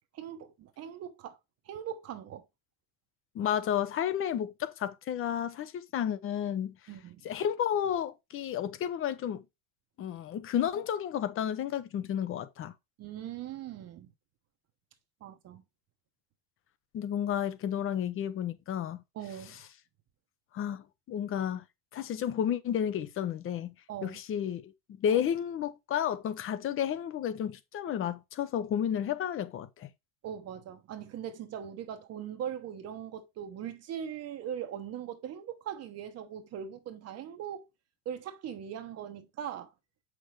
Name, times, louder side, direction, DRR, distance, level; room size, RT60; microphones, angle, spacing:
voice 1, 0.1-1.4 1.7-2.4 6.9-7.3 13.0-14.1 15.2-15.6 19.1-19.6 23.9-24.2 25.1-25.2 30.2-37.6 38.0-39.7, right 9 dB, 35° right, 1.0 m, -40 dB
voice 2, 3.3-6.7 7.2-9.4 10.0-12.7 16.9-19.0 20.5-21.6 21.9-23.7 24.0-24.7 25.0-29.9, left 9 dB, 30° left, 0.8 m, -32 dB
8.0 x 6.0 x 3.2 m
cardioid pair, 155°, 42 cm